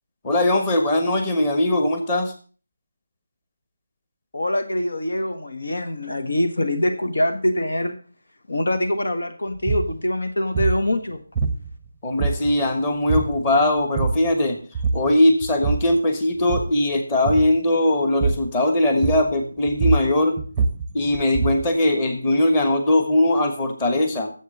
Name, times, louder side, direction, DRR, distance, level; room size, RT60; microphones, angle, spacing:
voice 1, 0.2-2.3 12.0-14.6 14.9-20.4 20.9-24.3, left 1 dB, 15° left, 6 dB, 1.2 m, -20 dB
voice 2, 4.3-7.9 8.5-11.2, left 1 dB, 85° left, 8 dB, 1.7 m, -24 dB
sound 1, 9.6-9.9 10.5-10.8 11.3-11.9 12.2-12.7 13.1-13.4 13.8-14.3 14.7-15.1 15.4-16.0 16.4-16.8 17.2-17.6 18.2-18.5 19.0-19.4 19.7-21.7, right 4 dB, 5° right, 0.7 m, -24 dB
10.5 x 7.6 x 6.6 m, 0.40 s
figure-of-eight pair, 175°, 0 cm